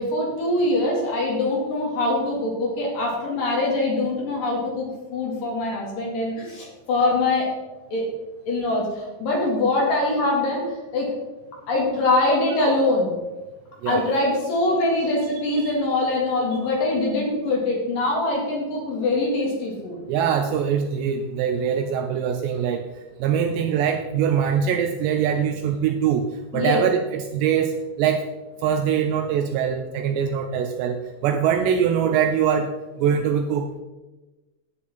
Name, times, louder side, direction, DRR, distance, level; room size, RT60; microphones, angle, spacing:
voice 1, 0.0-7.5 7.9-8.0 8.5-10.7 10.9-11.1 11.7-13.1 13.9-20.0 26.5-26.8, left 2 dB, 55° left, -2 dB, 3.2 m, -23 dB
voice 2, 20.1-28.3 28.6-32.7 33.0-33.8, right 8 dB, 80° right, 5 dB, 2.6 m, -23 dB
11.0 x 9.4 x 4.3 m, 1.1 s
omnidirectional pair, 5.5 m